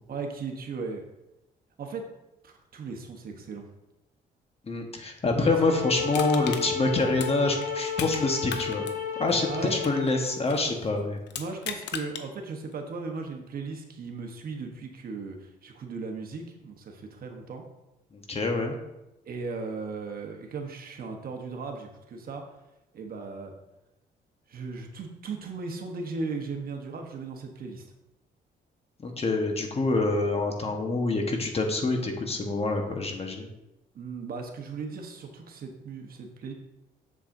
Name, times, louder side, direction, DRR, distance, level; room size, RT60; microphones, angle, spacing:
voice 1, 0.1-1.0 1.8-2.1 2.4-3.6 5.3-5.5 9.5-9.8 11.4-17.6 19.2-22.5 22.9-23.5 24.5-27.8 33.9-36.5, right 4 dB, 55° right, 3 dB, 1.1 m, -37 dB
voice 2, 4.7-8.9 9.2-11.2 18.1-18.8 29.0-33.5, left 3 dB, 35° left, 3 dB, 1.2 m, -26 dB
sound 1, 5.4-10.4, left 5 dB, 60° left, 2.4 m, -33 dB
Crushing, 6.1-8.2 8.5-10.7 11.3-12.3 12.7-12.8, left 8 dB, 80° left, 0.7 m, -37 dB
7.3 x 7.1 x 2.7 m, 0.93 s
cardioid pair, 85°, 18 cm